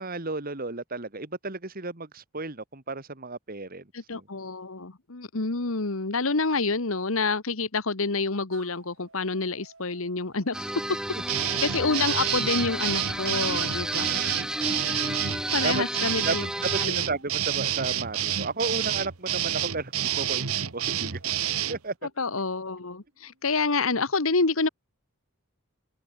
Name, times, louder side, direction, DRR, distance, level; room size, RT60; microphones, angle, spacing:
voice 1, 0.0-3.8 4.1-4.3 11.1-11.2 15.6-15.8 16.2-21.3 21.7-21.9, right 3 dB, 40° right, 2.0 m, -33 dB
voice 2, 3.9-10.5 11.6-14.2 15.5-16.5 16.8-17.0 22.2-24.7, left 3 dB, 70° left, 1.5 m, -28 dB
sound 1, 8.5-11.8 12.8-14.9 15.9-19.1 19.9-23.5, right 4 dB, 60° right, 6.8 m, -56 dB
sound 2, 10.5-16.9, right 1 dB, 5° right, 0.6 m, -32 dB
sound 3, 11.3-21.8, right 10 dB, 85° right, 1.3 m, -28 dB
head